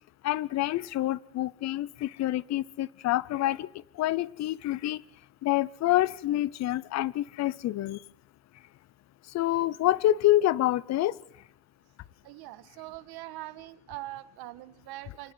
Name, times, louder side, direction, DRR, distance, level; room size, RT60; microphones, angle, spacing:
voice 1, 0.2-3.7 4.0-5.0 5.4-8.0 9.3-11.1, left 14 dB, 40° left, 21 dB, 0.7 m, -27 dB
voice 2, 12.2-15.3, right 17 dB, 65° right, 12 dB, 1.6 m, -42 dB
28.5 x 9.6 x 9.5 m, 0.74 s
cardioid pair, 135°, 40 cm